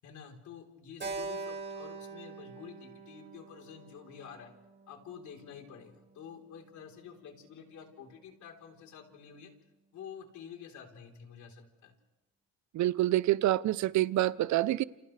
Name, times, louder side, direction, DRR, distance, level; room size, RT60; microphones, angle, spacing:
voice 1, 0.0-4.5 4.9-9.5 9.9-11.9, left 7 dB, 70° left, 4.0 m, -49 dB
Keyboard (musical), 1.0-5.4, right 3 dB, 35° right, 5.3 m, -43 dB
voice 2, 12.7-14.8, right 15 dB, 65° right, 0.7 m, -27 dB
29.5 x 28.5 x 3.4 m
cardioid pair, 90°, 31 cm